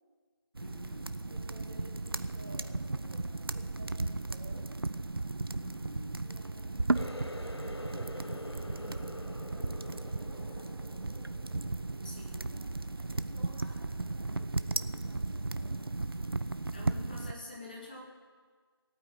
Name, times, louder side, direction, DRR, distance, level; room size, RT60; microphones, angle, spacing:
sound 1, 0.5-17.3, right 3 dB, 65° right, 0.6 m, -35 dB
voice 1, 0.6-1.1 5.6-6.1 12.0-12.5 16.7-18.0, left 2 dB, 20° left, -1 dB, 2.2 m, -47 dB
voice 2, 1.3-4.7 6.2-8.9 9.1-10.9 11.8-16.0 16.8-17.0, right 1 dB, 10° right, -6 dB, 1.2 m, -55 dB
Water tap faucet, 6.9-12.4 12.8-13.3 13.7-14.0 14.8-14.9, left 1 dB, 85° left, 1.2 m, -46 dB
18.0 x 9.1 x 8.8 m, 1.5 s
figure-of-eight pair, 170°, 13 cm